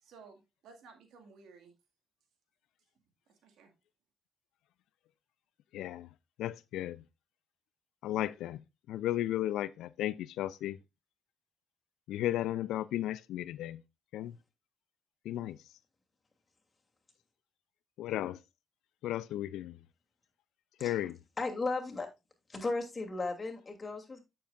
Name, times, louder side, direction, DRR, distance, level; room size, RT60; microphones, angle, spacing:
voice 1, 0.0-1.7 3.4-3.7, right 4 dB, 80° right, 1.9 m, -56 dB
voice 2, 5.7-6.1 6.4-7.0 8.0-8.6 8.9-10.8 12.1-13.8 14.1-14.3 15.3-15.6 18.0-18.4 19.0-19.8 20.8-21.2, left 13 dB, 85° left, 0.3 m, -34 dB
voice 3, 20.8-21.1 21.4-22.1 22.5-24.2, left 3 dB, 35° left, 2.8 m, -35 dB
9.1 x 7.5 x 2.4 m
supercardioid pair, 60°, 0 cm